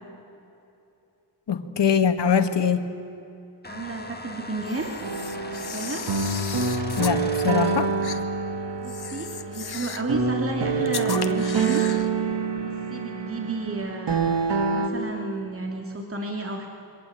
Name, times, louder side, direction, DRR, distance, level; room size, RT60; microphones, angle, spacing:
voice 1, 1.5-2.8 7.0-7.9, left 7 dB, 80° left, 8 dB, 1.8 m, -22 dB
sound 1, 3.6-8.1, left 2 dB, 25° left, 2.0 m, -40 dB
voice 2, 3.7-4.9 5.5-6.1 8.8-11.9 12.6-14.4 14.7-16.7, right 3 dB, 30° right, 1 dB, 2.8 m, -32 dB
Camera, 4.6-7.2 8.0-8.2 8.8-10.1 10.9-12.1, left 7 dB, 65° left, 1.4 m, -36 dB
sound 2, 5.0-14.9, right 4 dB, 80° right, 2.4 m, -26 dB
28.0 x 24.0 x 8.8 m, 2.8 s
wide cardioid pair, 100°, 42 cm